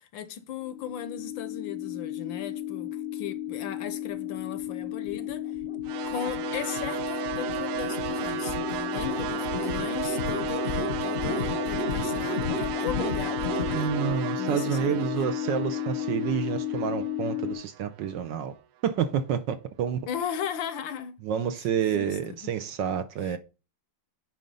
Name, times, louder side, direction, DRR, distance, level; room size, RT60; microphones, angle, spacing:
voice 1, 0.0-5.6 6.0-13.9 14.4-15.0 20.1-21.1 21.9-22.5 23.2-23.4, left 9 dB, 75° left, 1.3 m, -37 dB
sound 1, 0.7-17.5, left 8 dB, 50° left, 0.8 m, -32 dB
sound 2, 5.9-18.1, right 11 dB, 90° right, 1.6 m, -34 dB
voice 2, 13.7-18.5 18.8-20.0 21.2-23.4, right 8 dB, 70° right, 1.2 m, -29 dB
9.2 x 3.8 x 5.5 m
omnidirectional pair, 2.4 m